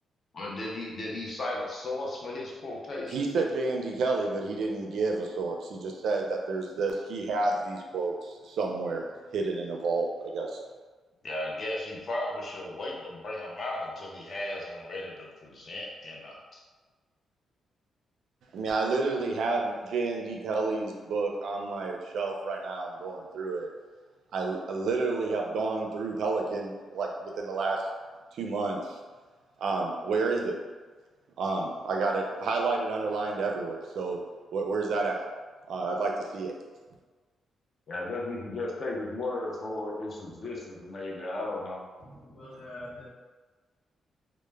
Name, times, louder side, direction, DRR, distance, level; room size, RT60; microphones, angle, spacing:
voice 1, 0.3-3.2 11.2-16.6 37.9-41.8, left 2 dB, 35° left, -3 dB, 0.5 m, -35 dB
voice 2, 3.1-9.0 9.3-10.6 18.5-23.7 24.3-27.8 28.3-29.0 29.6-30.6 31.4-34.2 34.5-35.2 35.7-36.5, right 3 dB, 65° right, 1 dB, 0.4 m, -30 dB
voice 3, 42.0-43.2, left 1 dB, 60° left, -7 dB, 0.9 m, -44 dB
2.2 x 2.0 x 3.2 m, 1.3 s
wide cardioid pair, 170°, 0 cm